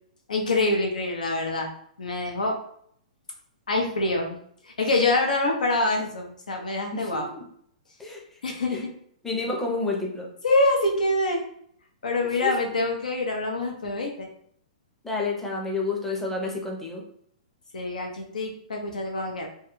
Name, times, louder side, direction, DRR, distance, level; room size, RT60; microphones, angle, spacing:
voice 1, 0.3-1.7 2.0-2.6 3.7-4.4 4.8-7.3 8.4-8.9 10.4-11.4 12.0-14.3 17.7-19.5, left 2 dB, 90° left, 2 dB, 0.6 m, -25 dB
voice 2, 6.9-7.4 8.0-8.2 8.7-8.8 9.2-10.3 12.2-12.6 15.0-17.0, left 3 dB, 5° left, -1 dB, 0.5 m, -30 dB
2.3 x 2.2 x 3.0 m, 0.66 s
hypercardioid pair, 140°, 4 cm